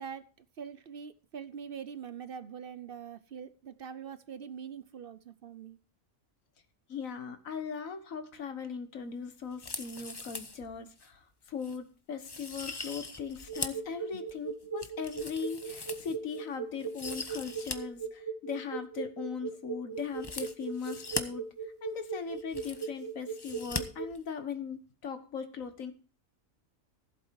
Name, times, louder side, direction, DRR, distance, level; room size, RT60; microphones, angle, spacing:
voice 1, 0.0-5.8 14.1-14.2, right 7 dB, 55° right, 0.7 m, -43 dB
voice 2, 6.9-21.4 21.8-25.9, left 6 dB, 75° left, 1.7 m, -39 dB
sound 1, 9.5-10.6 11.0-11.1 11.6-11.8 12.2-13.9 14.3-16.4 16.8-17.8 18.0-18.1 20.1-21.2 22.0-22.1 22.3-23.0 23.4-23.8 24.1-24.2, left 3 dB, 20° left, 0.8 m, -40 dB
sound 2, 13.5-24.1, right 7 dB, 15° right, 1.1 m, -38 dB
15.0 x 8.0 x 4.6 m
omnidirectional pair, 1.4 m